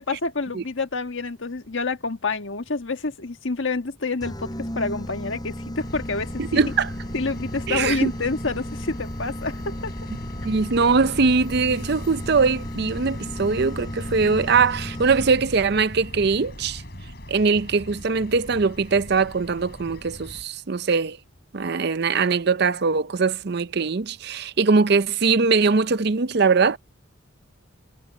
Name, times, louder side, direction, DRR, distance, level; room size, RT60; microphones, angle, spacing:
voice 1, 0.0-6.6 7.1-9.9, left 3 dB, 65° left, 1.5 m, -28 dB
sound 1, 4.2-15.6, equal, 20° left, 5.5 m, -35 dB
sound 2, 5.8-20.4, left 1 dB, 50° left, 6.7 m, -39 dB
voice 2, 6.4-6.9 7.7-8.1 10.4-16.8 17.3-21.2 21.5-26.8, right 4 dB, 50° right, 0.6 m, -21 dB
head